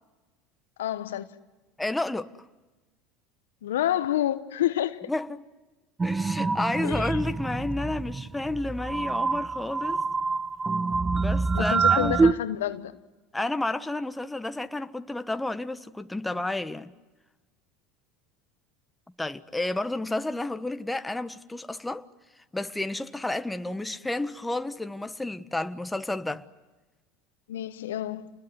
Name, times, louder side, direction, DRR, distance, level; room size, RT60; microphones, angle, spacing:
voice 1, 0.8-1.3 3.6-5.0 6.8-7.2 11.5-13.0 27.5-28.3, left 12 dB, 85° left, 1.2 m, -28 dB
voice 2, 1.8-2.3 5.1-5.4 6.0-10.0 11.1-12.3 13.3-16.9 19.2-22.1 22.5-26.4, left 2 dB, 10° left, 1.4 m, -31 dB
sound 1, 6.0-12.3, right 4 dB, 20° right, 1.1 m, -26 dB
29.5 x 21.0 x 9.5 m
hypercardioid pair, 85°, 0 cm